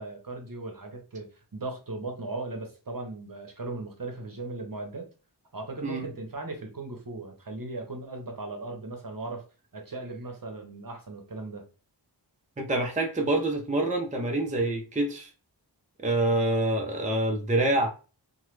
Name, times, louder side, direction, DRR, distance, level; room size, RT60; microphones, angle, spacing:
voice 1, 0.0-5.1 5.5-9.4 9.7-11.7, right 2 dB, 50° right, 0.8 m, -37 dB
voice 2, 12.6-15.3 16.0-17.9, right 2 dB, 20° right, 0.5 m, -26 dB
3.0 x 2.2 x 3.2 m
wide cardioid pair, 45°, 43 cm